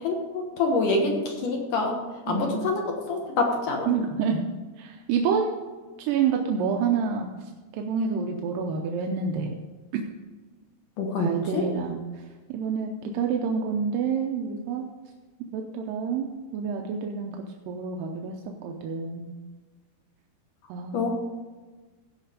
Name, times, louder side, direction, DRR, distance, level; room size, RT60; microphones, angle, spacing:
voice 1, 0.0-2.0 2.3-3.9 11.0-11.7 20.9-21.1, left 3 dB, 65° left, 1 dB, 2.5 m, -26 dB
voice 2, 2.3-2.7 3.9-4.4 4.8-5.6 6.0-7.3 7.7-9.6 9.9-10.0 11.2-12.0 12.5-14.9 15.4-18.3 18.6-19.3 20.7-21.1, right 6 dB, 75° right, 2 dB, 2.1 m, -28 dB
16.0 x 5.5 x 5.1 m, 1.3 s
omnidirectional pair, 4.6 m